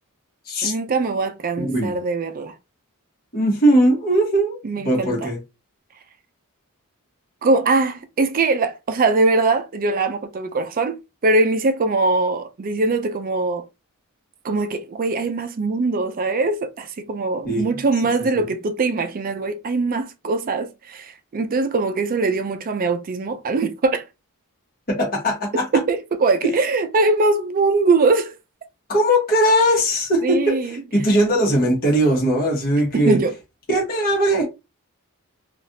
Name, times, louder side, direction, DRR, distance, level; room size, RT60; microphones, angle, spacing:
voice 1, 0.6-2.5 4.6-5.3 7.4-13.6 14.4-24.0 25.7-28.3 30.2-30.8 32.9-33.3, right 3 dB, 40° right, 0.4 m, -21 dB
voice 2, 1.6-1.9 3.3-4.6 4.8-5.4 17.4-17.7 18.3-18.4 24.9-25.7 28.9-33.2 33.7-34.4, right 1 dB, 45° left, 1.2 m, -19 dB
3.2 x 2.4 x 2.7 m
head